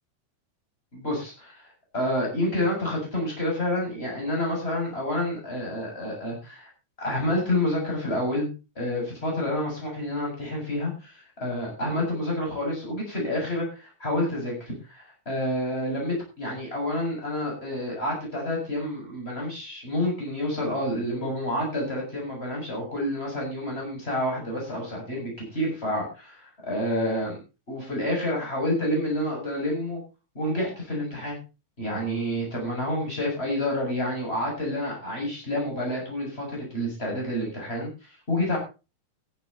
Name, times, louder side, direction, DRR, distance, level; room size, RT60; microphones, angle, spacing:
voice 1, 0.9-6.7 7.0-8.5 8.8-27.4 27.7-30.0 30.3-31.4 31.8-37.9 38.3-38.6, left 1 dB, 20° left, -1 dB, 7.8 m, -29 dB
14.0 x 11.5 x 4.3 m, 0.31 s
omnidirectional pair, 3.4 m